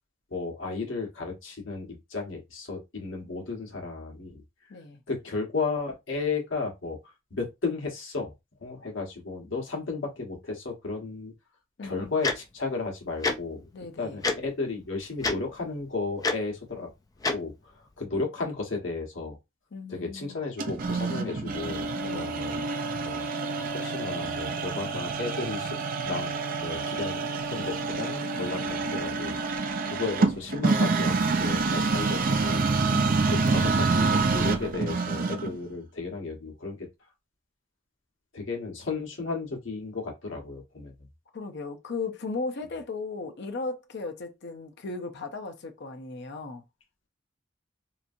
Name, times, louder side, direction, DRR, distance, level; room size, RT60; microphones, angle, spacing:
voice 1, 0.3-4.4 5.1-8.3 8.6-11.3 11.8-13.7 14.0-16.9 17.3-19.4 19.9-22.6 23.0-25.8 26.0-26.3 26.6-32.6 33.3-36.9 38.3-40.9, left 3 dB, 80° left, 1.2 m, -34 dB
voice 2, 4.7-5.0 11.8-12.1 13.7-14.2 19.7-20.4 22.0-22.4 32.9-33.7 41.3-46.6, left 3 dB, 60° left, 0.6 m, -36 dB
Tick-tock, 12.2-12.3 13.2-13.3 14.2-14.4 15.2-15.4 16.2-16.3 17.2-17.3, left 3 dB, 20° left, 0.4 m, -25 dB
sound 1, 20.6-35.6, right 4 dB, 45° right, 0.5 m, -27 dB
3.0 x 2.6 x 2.5 m
head